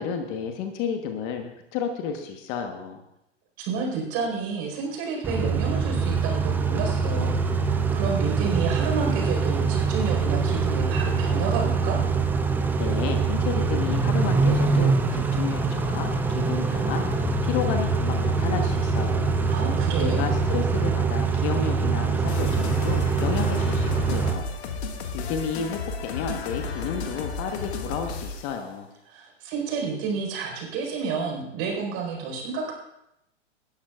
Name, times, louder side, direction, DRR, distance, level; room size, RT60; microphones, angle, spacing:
voice 1, 0.0-3.0 12.8-19.4 20.0-24.5 25.1-28.9, left 7 dB, 35° left, 5 dB, 1.2 m, -31 dB
voice 2, 3.6-12.0 19.5-20.2 29.1-32.7, right 5 dB, 40° right, 0 dB, 4.7 m, -30 dB
Car / Idling / Accelerating revving vroom, 5.2-24.3, right 4 dB, 5° right, 0.5 m, -24 dB
sound 1, 22.3-28.6, left 4 dB, 60° left, 1.9 m, -33 dB
19.0 x 11.5 x 2.4 m, 0.84 s
hypercardioid pair, 115°, 36 cm